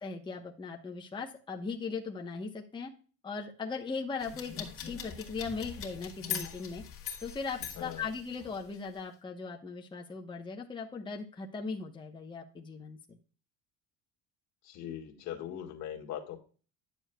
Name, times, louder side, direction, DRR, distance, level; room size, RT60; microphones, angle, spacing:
voice 1, 0.0-2.9 3.2-6.8 7.2-13.2, left 4 dB, 15° left, 1 dB, 1.0 m, -39 dB
sound 1, 4.2-8.8, left 8 dB, 45° left, 1.8 m, -41 dB
voice 2, 7.8-8.1 14.6-16.4, left 10 dB, 65° left, 2 dB, 1.7 m, -40 dB
11.0 x 7.0 x 2.2 m, 0.38 s
cardioid pair, 140°, 31 cm